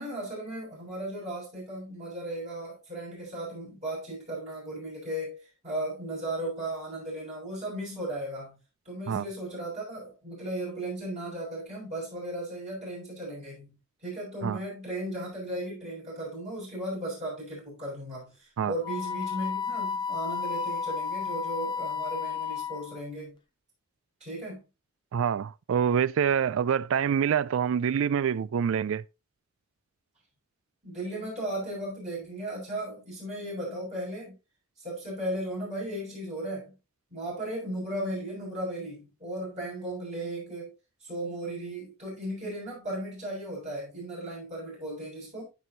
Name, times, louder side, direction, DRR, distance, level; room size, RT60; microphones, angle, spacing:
voice 1, 0.0-8.6 8.8-23.4 24.2-24.6 30.8-34.3 34.8-36.7 37.1-40.7 41.0-45.5, right 1 dB, 35° right, 6.4 m, -36 dB
Wind instrument woodwind instrument, 18.8-23.0, left 6 dB, 20° left, 0.7 m, -32 dB
voice 2, 25.1-29.0, right 7 dB, 65° right, 0.3 m, -26 dB
14.0 x 6.2 x 2.8 m
head